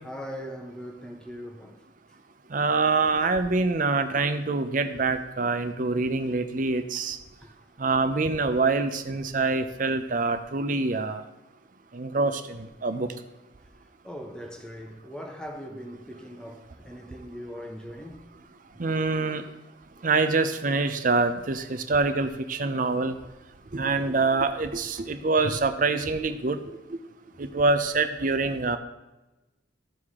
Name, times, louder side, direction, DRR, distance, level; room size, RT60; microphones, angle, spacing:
voice 1, 0.0-1.8 7.4-7.5 14.0-18.2 25.1-25.2, equal, 5° left, 0.8 m, -40 dB
voice 2, 2.5-7.2 7.8-11.2 11.9-13.1 18.8-19.4 20.0-23.2 23.7-26.6 26.9-27.0 27.4-28.8, right 3 dB, 40° right, 0.5 m, -25 dB
14.0 x 4.8 x 3.6 m
head